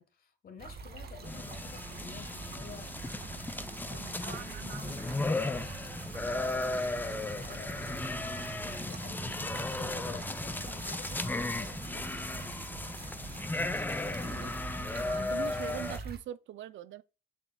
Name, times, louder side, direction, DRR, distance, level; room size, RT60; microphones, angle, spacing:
voice 1, 0.0-3.0 3.9-5.9 6.3-7.8 8.6-12.6, left 6 dB, 50° left, 1.4 m, -50 dB
sound 1, 0.6-16.2, right 4 dB, 50° right, 1.3 m, -44 dB
sound 2, 1.2-16.0, left 2 dB, 10° left, 0.5 m, -35 dB
voice 2, 3.9-5.4 14.2-14.5 15.0-17.0, right 12 dB, 70° right, 0.4 m, -43 dB
7.3 x 6.0 x 2.3 m
cardioid pair, 90°, 20 cm